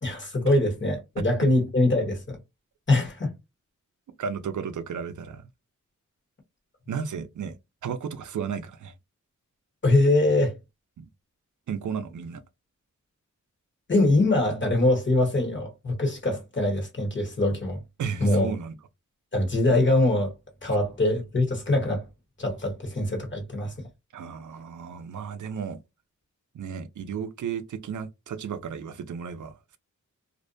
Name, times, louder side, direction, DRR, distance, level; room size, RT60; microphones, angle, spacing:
voice 1, 0.0-2.4 2.9-3.3 9.8-10.5 13.9-17.8 18.2-18.5 19.3-20.3 20.6-22.0 22.4-23.7, left 2 dB, 35° left, 1.1 m, -23 dB
voice 2, 4.2-5.5 6.9-7.6 7.8-8.9 11.0-11.1 11.7-12.4 18.0-18.8 20.7-20.8 24.1-25.8 26.5-29.8, right 7 dB, 70° right, 0.5 m, -34 dB
2.6 x 2.1 x 2.5 m
wide cardioid pair, 90°, 31 cm